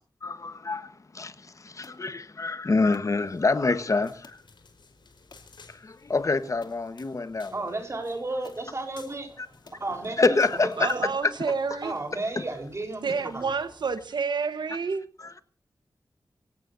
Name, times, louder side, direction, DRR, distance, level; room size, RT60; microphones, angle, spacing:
voice 1, 0.2-4.4 5.7-7.7 10.2-10.9 12.4-12.5 15.2-15.4, left 3 dB, 45° left, 1.2 m, -26 dB
sound 1, 1.8-2.0 2.9-3.1 4.2-4.5 5.3-5.5 6.1-6.2 6.6-6.9 7.9-8.0 8.4-8.7 9.3-9.4 9.7-9.9 10.5-10.6 10.9-11.1, left 4 dB, 65° left, 2.8 m, -51 dB
sound 2, 3.2-14.1, left 4 dB, 85° left, 4.4 m, -57 dB
voice 2, 7.5-9.5 9.8-11.1 11.8-13.5, right 2 dB, 35° right, 4.0 m, -33 dB
voice 3, 10.8-11.9 13.0-15.1, right 5 dB, 75° right, 1.2 m, -29 dB
25.0 x 17.0 x 2.7 m
wide cardioid pair, 120°, 8 cm